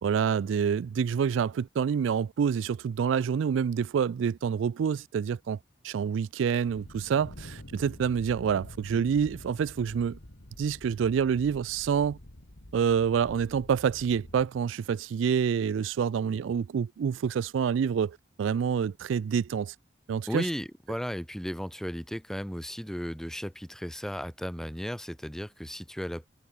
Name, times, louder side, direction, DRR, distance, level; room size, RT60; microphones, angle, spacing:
voice 1, 0.0-5.6 5.8-10.2 10.6-12.2 12.7-19.7 20.1-20.5, right 7 dB, 80° right, 0.3 m, -27 dB
sound 1, 6.7-14.5, left 1 dB, 75° left, 2.6 m, -47 dB
voice 2, 20.3-26.3, equal, ahead, 1.1 m, -35 dB
head